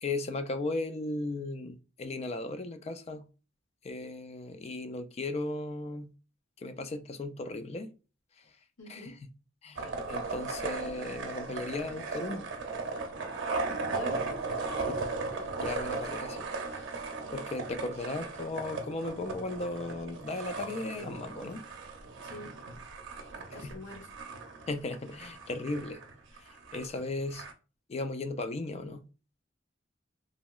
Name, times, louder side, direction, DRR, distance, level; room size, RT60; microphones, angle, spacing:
voice 1, 0.0-3.3 3.8-6.1 6.6-7.9 8.9-9.1 9.6-12.5 14.9-15.0 15.6-16.4 16.8-16.9 17.3-21.6 23.6-23.7 24.7-26.0 26.4-27.4 27.9-29.1, left 2 dB, 35° left, 0.3 m, -36 dB
voice 2, 8.8-9.1 13.9-14.4 22.2-22.5 23.5-24.1, left 2 dB, 70° left, 1.0 m, -45 dB
sound 1, 9.8-27.5, right 3 dB, 65° right, 0.6 m, -37 dB
2.9 x 2.8 x 2.3 m
head